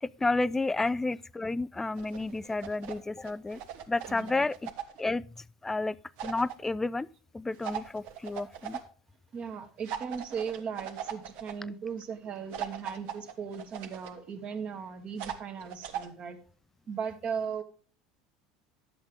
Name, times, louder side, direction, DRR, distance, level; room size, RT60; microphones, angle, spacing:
voice 1, 0.0-3.6 3.9-4.7 5.0-6.0 6.2-7.1 7.3-8.8, left 3 dB, 10° left, 0.3 m, -31 dB
sound 1, 2.0-3.0 3.2-5.0 6.2-6.5 7.6-8.8 9.8-11.5 12.5-14.1 15.2-16.1, right 9 dB, 65° right, 1.4 m, -39 dB
voice 2, 9.3-16.4 16.9-17.6, right 6 dB, 40° right, 1.6 m, -37 dB
10.5 x 8.0 x 3.5 m
supercardioid pair, 100°, 3 cm